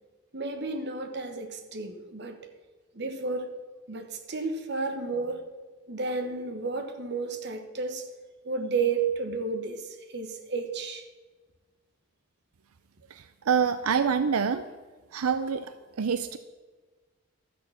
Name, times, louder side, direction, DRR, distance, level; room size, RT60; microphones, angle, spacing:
voice 1, 0.3-2.4 2.9-3.5 3.9-5.4 5.9-8.0 8.4-11.0, right 4 dB, 50° right, 6 dB, 1.1 m, -32 dB
voice 2, 13.1-14.7 15.1-16.4, right 6 dB, 90° right, 11 dB, 0.5 m, -26 dB
12.0 x 6.3 x 7.4 m, 1.3 s
head